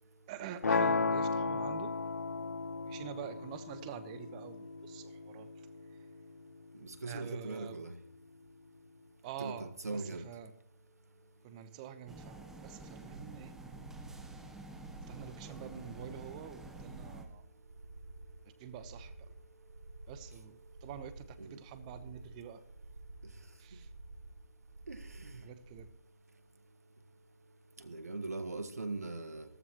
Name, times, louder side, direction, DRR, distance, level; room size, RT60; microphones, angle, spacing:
voice 1, 0.3-2.0 2.8-5.5 5.9-6.0 7.0-7.8 9.2-10.5 11.4-13.6 15.1-17.4 18.6-19.3 20.1-22.6 23.6-23.9 25.4-25.9, right 9 dB, 30° right, 1.1 m, -47 dB
sound 1, 0.6-6.7, left 4 dB, 80° left, 0.6 m, -35 dB
voice 2, 6.8-7.9 9.4-10.2 21.4-21.5 24.9-25.0 27.9-29.4, right 3 dB, 85° right, 1.6 m, -40 dB
sound 2, 12.1-17.2, right 2 dB, 5° right, 1.0 m, -50 dB
sound 3, 13.1-25.9, right 2 dB, 65° right, 1.7 m, -51 dB
15.5 x 14.0 x 3.1 m
figure-of-eight pair, 145°, 8 cm